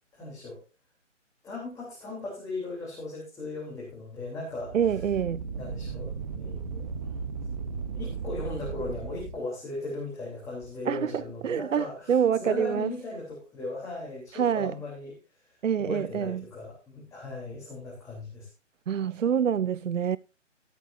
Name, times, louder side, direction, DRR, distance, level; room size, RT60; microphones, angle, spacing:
voice 1, 0.1-0.6 1.4-5.0 5.5-7.1 7.9-18.5, left 3 dB, 10° left, 3.5 m, -38 dB
sound 1, 4.5-9.4, right 5 dB, 35° right, 1.0 m, -36 dB
voice 2, 4.7-5.4 10.9-11.1 11.4-12.9 14.3-14.7 15.6-16.4 18.9-20.2, right 8 dB, 80° right, 0.5 m, -26 dB
14.0 x 13.5 x 2.7 m
figure-of-eight pair, 145°, 37 cm